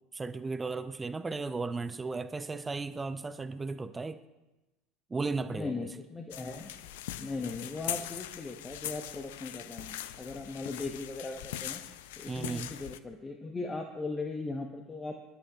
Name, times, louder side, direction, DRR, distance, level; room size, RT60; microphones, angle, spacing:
voice 1, 0.1-4.2 5.1-5.7 12.3-12.7, right 3 dB, 20° right, 11 dB, 0.6 m, -35 dB
voice 2, 5.5-6.7 7.2-11.8 12.2-15.2, left 3 dB, 20° left, 3 dB, 1.0 m, -38 dB
sound 1, 6.3-13.0, left 12 dB, 65° left, 0.5 m, -41 dB
25.0 x 11.0 x 2.4 m, 1.0 s
figure-of-eight pair, 70°, 0 cm